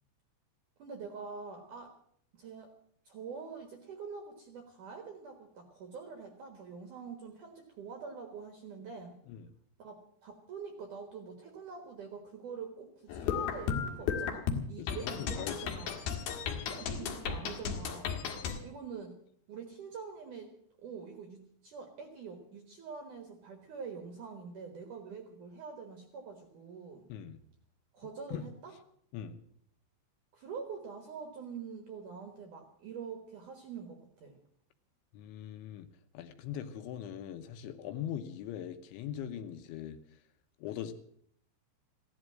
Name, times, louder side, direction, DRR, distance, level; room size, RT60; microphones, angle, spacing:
voice 1, 0.8-1.9 2.3-2.7 3.1-9.2 9.8-16.0 16.7-18.3 18.6-19.2 19.5-20.5 20.8-27.0 27.9-28.7 30.3-34.4, right 5 dB, 60° right, 6 dB, 2.2 m, -45 dB
sound 1, 13.1-18.6, left 7 dB, 60° left, 3.0 m, -34 dB
voice 2, 14.8-15.8 18.4-18.6 27.1-27.4 28.3-28.4 29.1-29.4 35.1-35.9 36.1-40.0 40.6-40.9, left 10 dB, 75° left, 8 dB, 3.1 m, -41 dB
16.0 x 11.5 x 7.5 m, 0.66 s
omnidirectional pair, 5.7 m